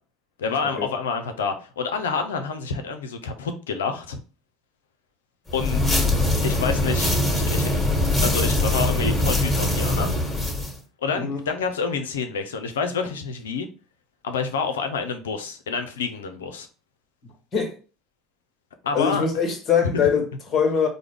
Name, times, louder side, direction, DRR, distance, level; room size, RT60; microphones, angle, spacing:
voice 1, 0.4-4.2 5.5-5.8 6.4-7.7 8.2-10.1 11.0-13.7 14.2-16.7 18.8-19.2 19.8-19.9, left 5 dB, 85° left, 0.6 m, -28 dB
sound 1, 5.5-10.8, left 1 dB, 10° left, 1.6 m, -22 dB
voice 2, 18.9-20.9, left 6 dB, 40° left, 1.5 m, -23 dB
4.7 x 2.2 x 3.4 m
hypercardioid pair, 70°, 0 cm